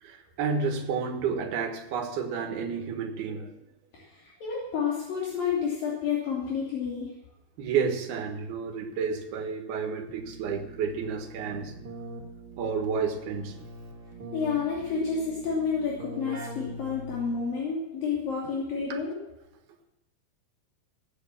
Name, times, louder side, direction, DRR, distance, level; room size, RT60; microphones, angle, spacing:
voice 1, 0.0-3.6 7.6-11.9 12.6-13.6 18.9-19.0, right 6 dB, 75° right, 3.5 m, -31 dB
voice 2, 3.9-7.1 14.3-19.2, left 6 dB, 65° left, 4.5 m, -30 dB
Keyboard (musical), 10.1-17.6, right 1 dB, 30° right, 2.5 m, -43 dB
18.0 x 9.4 x 7.2 m
omnidirectional pair, 4.5 m